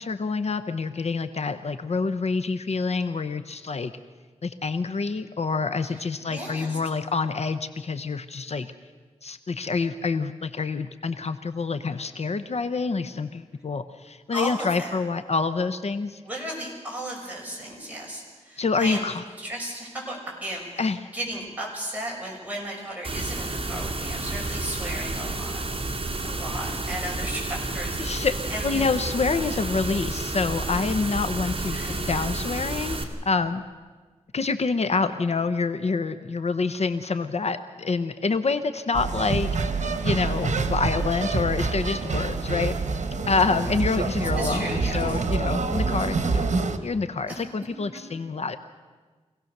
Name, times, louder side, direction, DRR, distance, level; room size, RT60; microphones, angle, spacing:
voice 1, 0.0-3.9 4.4-8.7 9.2-16.2 18.6-19.2 20.8-21.0 28.0-28.4 28.6-31.8 32.1-33.6 34.3-39.5 40.0-42.8 43.3-46.4 46.8-48.6, left 4 dB, 60° left, 10 dB, 0.8 m, -27 dB
voice 2, 6.3-6.8 14.3-15.0 16.2-19.1 19.4-25.9 26.2-29.0 31.7-32.0 44.2-45.2 47.3-47.4, right 1 dB, 15° right, -3 dB, 6.7 m, -35 dB
sound 1, 23.0-33.0, right 2 dB, 50° right, 2.2 m, -30 dB
sound 2, 38.9-46.8, right 4 dB, 80° right, 1.3 m, -26 dB
25.5 x 17.5 x 6.7 m, 1.4 s
wide cardioid pair, 105°, 12 cm